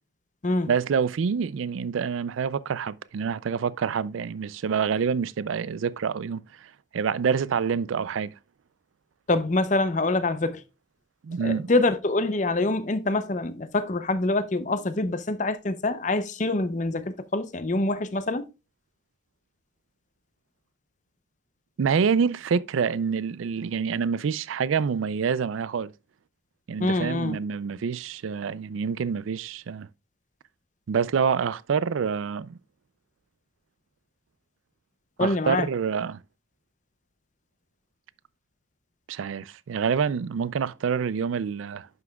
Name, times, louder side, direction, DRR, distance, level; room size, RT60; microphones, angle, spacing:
voice 1, 0.7-8.3 11.2-11.7 21.8-25.9 26.7-29.9 30.9-32.6 35.2-36.2 39.1-41.9, right 6 dB, 90° right, 0.4 m, -27 dB
voice 2, 9.3-10.6 11.4-18.5 26.8-27.4 35.2-35.7, left 2 dB, 40° left, 0.6 m, -25 dB
11.0 x 5.9 x 2.3 m
head